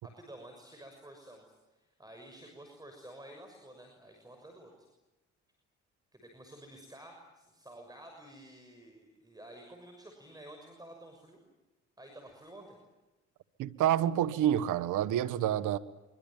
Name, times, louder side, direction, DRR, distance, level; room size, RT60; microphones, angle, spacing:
voice 1, 0.0-4.9 6.1-11.4 12.0-12.8, right 1 dB, 10° right, 6.4 m, -51 dB
voice 2, 13.6-15.8, right 11 dB, 85° right, 1.4 m, -28 dB
24.5 x 24.5 x 9.1 m
cardioid pair, 90°, 30 cm